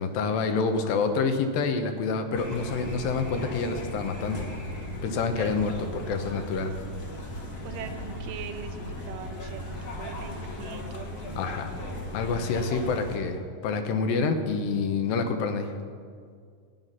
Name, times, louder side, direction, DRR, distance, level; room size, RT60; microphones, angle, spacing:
voice 1, 0.0-4.4 5.0-6.7 11.4-11.7 12.1-15.7, left 4 dB, 85° left, 7 dB, 2.6 m, -27 dB
sound 1, 2.3-13.2, left 1 dB, 55° left, 1.0 m, -37 dB
voice 2, 5.3-5.8 7.6-11.5 12.5-12.8, right 6 dB, 80° right, 7 dB, 2.2 m, -42 dB
14.5 x 5.8 x 9.5 m, 2.1 s
omnidirectional pair, 4.1 m